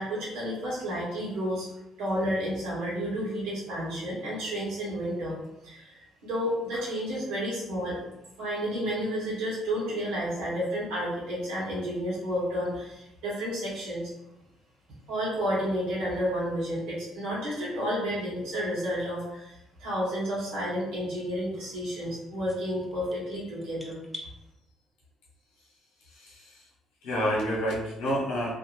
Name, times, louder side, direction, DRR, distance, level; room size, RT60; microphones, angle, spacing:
voice 1, 0.0-1.7 2.0-5.3 5.6-8.0 8.4-14.1 15.1-19.5 19.8-24.0, equal, 80° right, -6 dB, 1.2 m, -31 dB
sound 1, 22.5-24.3, left 1 dB, 5° left, 0.6 m, -45 dB
voice 2, 26.0-26.6 27.0-28.6, equal, 75° left, -4 dB, 0.8 m, -29 dB
2.6 x 2.1 x 3.0 m, 0.88 s
hypercardioid pair, 55°, 0 cm